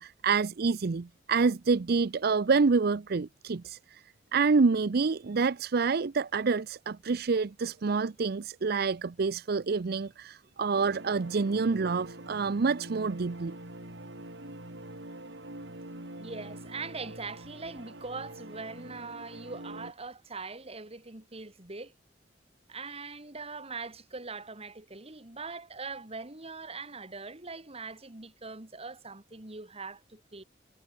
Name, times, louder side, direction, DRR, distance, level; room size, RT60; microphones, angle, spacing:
voice 1, 0.0-4.0 4.3-13.6, right 4 dB, 55° right, 0.5 m, -27 dB
sound 1, 10.7-19.9, right 1 dB, 75° right, 6.1 m, -45 dB
voice 2, 16.1-21.9 22.7-30.4, right 4 dB, 35° right, 2.7 m, -42 dB
head